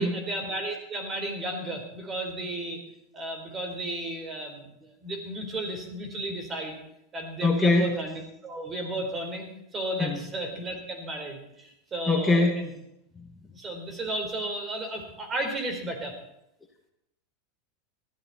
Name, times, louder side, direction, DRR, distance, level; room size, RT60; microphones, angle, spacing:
voice 1, 0.0-2.8 3.1-6.8 7.1-12.7 13.5-16.1, right 1 dB, 25° right, 5 dB, 4.4 m, -34 dB
voice 2, 7.4-7.9 10.0-10.2 12.1-12.7 13.2-13.3, left 3 dB, 10° left, 1 dB, 2.1 m, -22 dB
19.5 x 13.5 x 4.4 m, 0.82 s
supercardioid pair, 120°, 0 cm